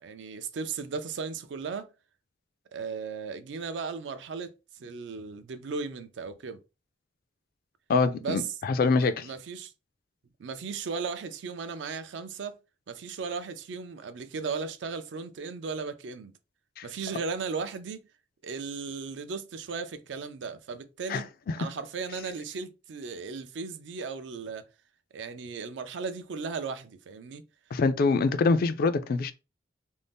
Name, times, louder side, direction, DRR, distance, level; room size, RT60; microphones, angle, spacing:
voice 1, 0.0-1.9 2.7-4.5 4.8-6.6 8.2-8.4 8.9-9.7 10.4-12.6 12.9-16.3 16.8-18.0 18.4-21.3 21.6-24.6 25.1-27.4, right 5 dB, 70° right, 0.4 m, -36 dB
voice 2, 7.9-9.3 16.8-16.9 21.1-21.6 27.7-29.3, left 4 dB, 55° left, 0.3 m, -25 dB
2.6 x 2.0 x 3.4 m
head